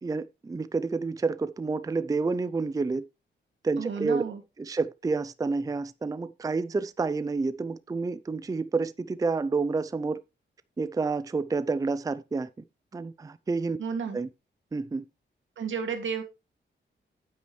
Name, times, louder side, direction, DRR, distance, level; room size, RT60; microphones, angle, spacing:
voice 1, 0.0-3.0 3.6-4.2 4.6-10.2 10.8-12.5 12.9-13.8 14.1-14.3 14.7-15.0, right 4 dB, 20° right, 0.4 m, -29 dB
voice 2, 3.8-4.4 13.8-14.2 15.6-16.2, right 6 dB, 80° right, 2.2 m, -32 dB
9.8 x 8.4 x 3.1 m
wide cardioid pair, 115°, 20 cm